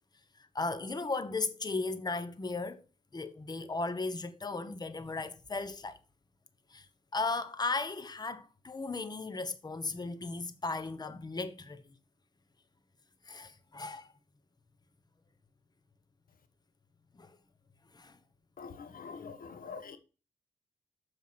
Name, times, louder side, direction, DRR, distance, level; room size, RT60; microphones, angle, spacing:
voice 1, 0.4-2.8 3.1-6.0 6.7-6.9 7.1-11.8 13.3-14.1 17.2-17.4 17.9-18.2, left 3 dB, 25° left, 1.1 m, -36 dB
voice 2, 18.6-20.0, left 5 dB, 70° left, 1.3 m, -45 dB
7.3 x 7.2 x 6.1 m
cardioid pair, 95°, 15 cm